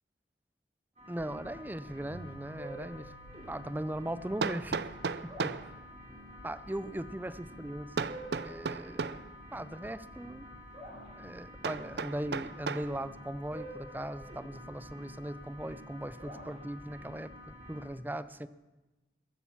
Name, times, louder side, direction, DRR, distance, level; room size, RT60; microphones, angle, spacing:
sound 1, 1.0-17.8, equal, 35° right, 4.9 m, -48 dB
voice 1, 1.1-3.1 3.5-4.8 5.4-5.6 6.4-8.1 8.4-9.1 9.5-10.5 11.2-18.5, right 1 dB, 10° right, 14 dB, 0.5 m, -39 dB
Piano, 2.1-10.2, right 1 dB, 75° left, 2.1 m, -60 dB
Hammer, 2.8-2.9 4.4-5.7 8.0-9.3 11.6-12.9, right 5 dB, 70° right, 0.5 m, -35 dB
21.5 x 8.7 x 7.1 m, 1.1 s
head